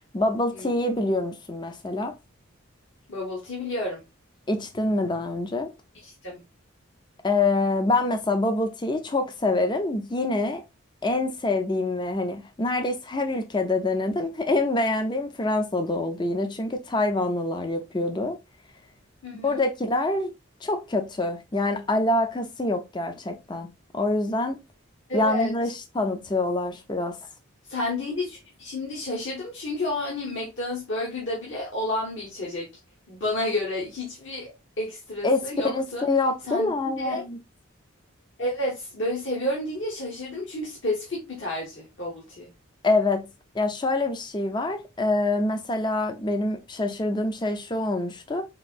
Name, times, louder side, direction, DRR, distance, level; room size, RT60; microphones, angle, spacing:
voice 1, 0.1-2.1 4.5-5.7 7.2-10.6 11.0-18.4 19.4-20.3 20.6-24.6 25.1-27.2 35.2-37.4 42.8-43.3 43.5-48.4, left 2 dB, 20° left, 0.4 m, -26 dB
voice 2, 3.1-4.0 6.0-6.4 19.2-19.6 25.1-25.5 27.7-32.7 33.1-34.5 34.8-36.1 36.5-36.7 37.0-37.2 38.4-42.5, left 1 dB, 60° left, 1.0 m, -30 dB
4.2 x 2.6 x 2.4 m
head